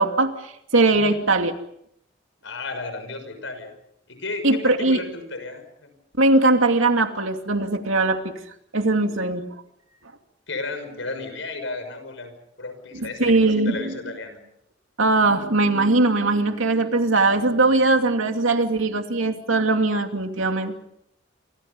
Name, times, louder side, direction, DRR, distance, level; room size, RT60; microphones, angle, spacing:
voice 1, 0.0-1.5 4.4-5.0 6.2-8.3 8.7-9.4 12.9-13.9 15.0-20.7, right 2 dB, 85° right, 5 dB, 2.6 m, -20 dB
voice 2, 0.9-1.2 2.4-3.7 4.1-5.9 10.5-14.4, left 3 dB, 70° left, 8 dB, 6.4 m, -34 dB
30.0 x 25.5 x 5.5 m, 0.75 s
head